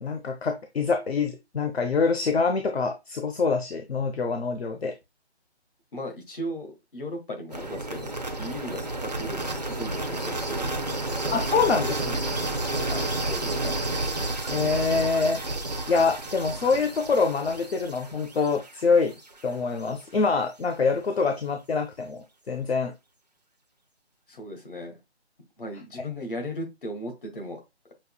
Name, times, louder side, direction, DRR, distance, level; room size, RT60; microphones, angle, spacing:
voice 1, 0.0-4.9 11.3-12.4 14.5-15.4 15.9-19.1 19.4-22.9, left 4 dB, 65° left, 5 dB, 0.8 m, -25 dB
voice 2, 5.9-9.4 9.7-12.1 12.8-14.0 24.3-25.0 25.6-27.6, left 1 dB, 50° left, 3 dB, 1.7 m, -37 dB
sound 1, 7.5-19.4, right 2 dB, 40° right, 0.5 m, -31 dB
6.5 x 2.9 x 2.3 m, 0.22 s
hypercardioid pair, 175°, 34 cm